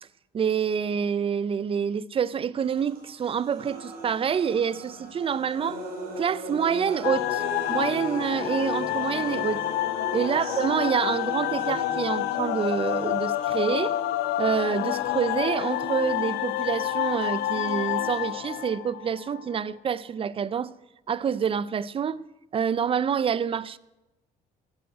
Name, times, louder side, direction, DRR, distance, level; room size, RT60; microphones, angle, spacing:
voice 1, 0.3-5.8 6.2-7.4 7.7-9.6 10.1-14.0 14.4-20.7 21.1-22.2 22.5-23.8, right 7 dB, 35° right, 0.6 m, -27 dB
sound 1, 2.6-18.6, right 1 dB, 60° right, 5.1 m, -40 dB
sound 2, 7.0-19.6, left 14 dB, 85° left, 0.7 m, -29 dB
12.5 x 11.5 x 8.0 m
cardioid pair, 110°, 17 cm